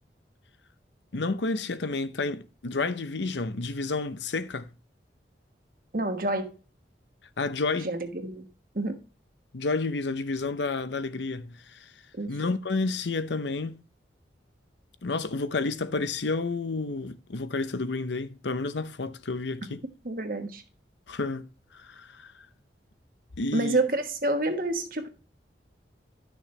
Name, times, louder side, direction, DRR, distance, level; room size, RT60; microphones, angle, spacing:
voice 1, 1.1-4.7 7.4-7.9 9.5-11.9 12.3-13.8 15.0-19.8 21.1-21.5 21.7-22.3 23.4-23.8, left 3 dB, 90° left, 0.8 m, -30 dB
voice 2, 5.9-6.5 7.8-8.5 8.7-9.0 12.2-12.3 20.0-20.6 23.5-25.1, right 2 dB, 50° right, 1.3 m, -28 dB
11.5 x 6.3 x 3.2 m
head